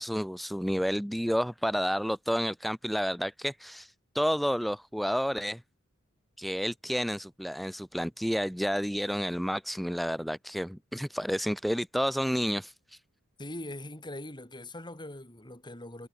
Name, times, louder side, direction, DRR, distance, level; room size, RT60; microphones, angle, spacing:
voice 1, 0.0-5.6 6.4-13.0, equal, ahead, 2.1 m, -30 dB
voice 2, 13.4-16.1, left 1 dB, 20° left, 7.2 m, -41 dB
head